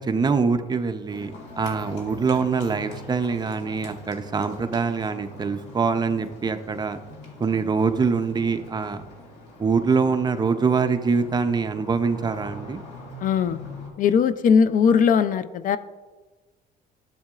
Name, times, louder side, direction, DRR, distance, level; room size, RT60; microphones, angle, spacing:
voice 1, 0.1-1.3 1.6-7.0 7.4-9.0 9.6-12.8, right 5 dB, 25° right, 8 dB, 0.5 m, -24 dB
Livestock farm animals working animals, 1.1-13.9, left 1 dB, 85° left, 2.2 m, -42 dB
voice 2, 13.2-13.6 14.0-15.8, left 6 dB, 50° left, 13 dB, 0.4 m, -19 dB
11.5 x 7.5 x 2.4 m, 1.3 s
cardioid pair, 110°, 17 cm